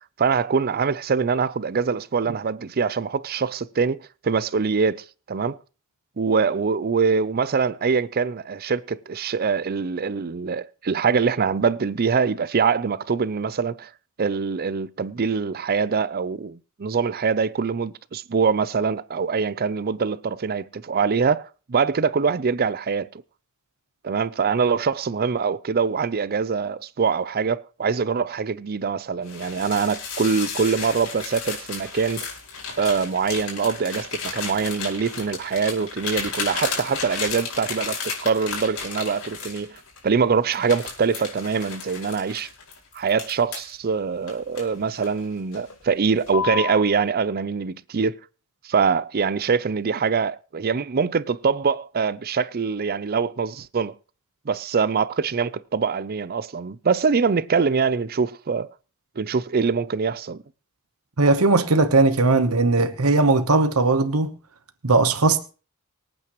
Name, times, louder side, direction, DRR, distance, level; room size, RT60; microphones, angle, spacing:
voice 1, 0.2-5.6 6.2-13.9 14.2-23.2 24.0-32.3 32.8-42.5 42.9-48.2 48.6-53.9 54.5-58.7 59.2-60.4, right 5 dB, 45° right, 0.5 m, -24 dB
sound 1, 29.2-40.0 40.5-43.7 44.3-45.2 45.5-45.8 46.3-46.8, left 5 dB, 85° left, 5.2 m, -33 dB
voice 2, 61.2-64.3 64.8-65.4, right 3 dB, 80° right, 1.1 m, -18 dB
24.5 x 8.9 x 3.1 m
head